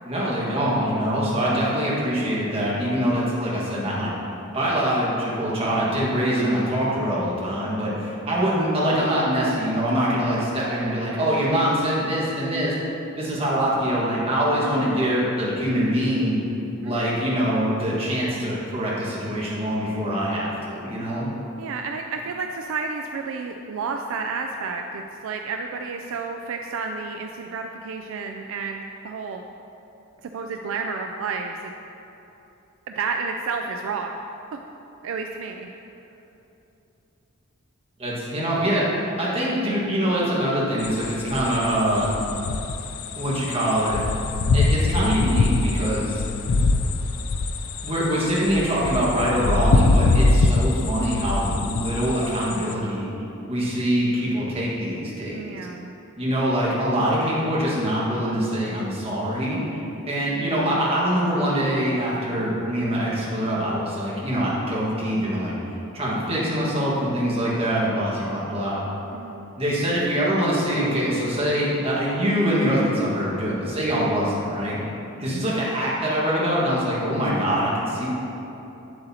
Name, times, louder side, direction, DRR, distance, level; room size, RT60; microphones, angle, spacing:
voice 1, 0.0-4.1 4.5-12.7 13.1-16.4 16.8-21.3 38.0-38.9 39.2-42.1 43.2-44.0 44.5-46.2 47.8-53.1 53.5-55.4 56.2-59.8 60.1-65.5 65.9-68.8 69.6-74.8 75.2-78.1, equal, 25° right, -7 dB, 1.6 m, -24 dB
voice 2, 21.6-29.5 30.2-31.7 32.9-34.2 34.5-34.6 35.0-35.7 55.3-55.9 60.3-60.8 69.1-69.5, right 4 dB, 65° right, 3 dB, 0.3 m, -31 dB
sound 1, 40.8-52.7, left 3 dB, 80° left, 0.4 m, -23 dB
8.1 x 7.7 x 2.8 m, 3.0 s
head